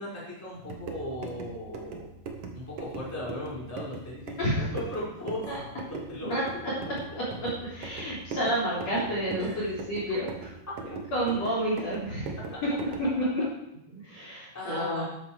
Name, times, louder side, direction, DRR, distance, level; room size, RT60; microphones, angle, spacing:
voice 1, 0.0-2.1 2.5-5.4 5.9-6.8 9.4-9.5 14.5-15.0, left 1 dB, 5° left, -7 dB, 4.5 m, -37 dB
sound 1, 0.6-13.2, right 4 dB, 70° right, 1.4 m, -41 dB
voice 2, 7.1-10.3 10.9-12.4 13.2-13.4 13.9-15.0, equal, 40° left, -6 dB, 4.2 m, -30 dB
12.5 x 12.0 x 4.8 m, 0.84 s
omnidirectional pair, 5.1 m